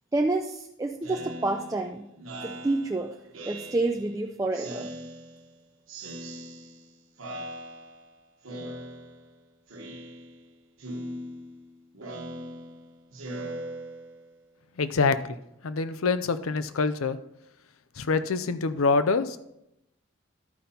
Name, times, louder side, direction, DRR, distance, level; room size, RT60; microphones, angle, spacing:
voice 1, 0.1-2.1 2.4-3.1 3.5-4.9, right 2 dB, 15° right, 3 dB, 0.3 m, -28 dB
Speech synthesizer, 1.0-4.2 4.5-5.6 5.9-6.9 7.2-8.1 8.4-9.3 9.7-10.5 10.8-14.3, right 1 dB, 75° right, 1.2 m, -40 dB
voice 2, 14.8-15.4 15.6-17.2 18.0-19.4, left 4 dB, 90° left, 12 dB, 0.6 m, -25 dB
12.0 x 5.3 x 4.3 m, 0.84 s
head